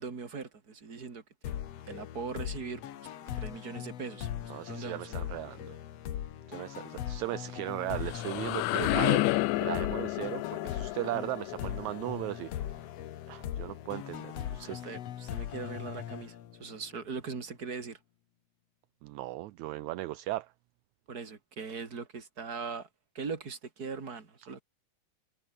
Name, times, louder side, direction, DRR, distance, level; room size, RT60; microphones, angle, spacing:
voice 1, 0.0-1.5 1.9-5.2 14.6-18.0 21.1-22.9 23.1-24.6, right 5 dB, 30° right, 3.3 m, -41 dB
sound 1, 1.4-16.9, left 11 dB, 60° left, 2.2 m, -40 dB
voice 2, 4.5-5.8 6.5-9.3 9.6-12.5 13.3-14.8 19.0-20.5, right 17 dB, 75° right, 2.0 m, -37 dB
sound 2, 7.7-13.5, left 19 dB, 80° left, 1.9 m, -31 dB
omnidirectional pair, 3.5 m